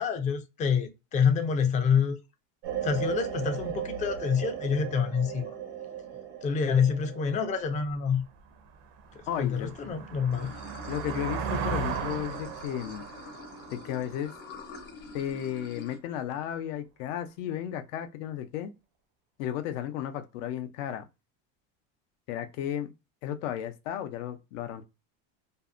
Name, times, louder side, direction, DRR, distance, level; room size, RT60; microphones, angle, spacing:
voice 1, 0.0-2.2 2.8-5.5 6.4-8.2 9.4-10.5, left 6 dB, 20° left, 0.3 m, -27 dB
sound 1, 2.6-7.8, right 9 dB, 90° right, 1.0 m, -36 dB
sound 2, 7.9-8.0 8.5-15.1, right 6 dB, 55° right, 0.5 m, -37 dB
voice 2, 9.3-9.7 10.9-13.0 13.7-14.3 15.1-18.7 19.4-21.0 22.3-22.9 23.2-24.8, left 10 dB, 85° left, 0.5 m, -34 dB
Water / Sink (filling or washing), 10.3-16.0, left 4 dB, 60° left, 0.9 m, -46 dB
2.6 x 2.1 x 2.3 m
supercardioid pair, 125°, 37 cm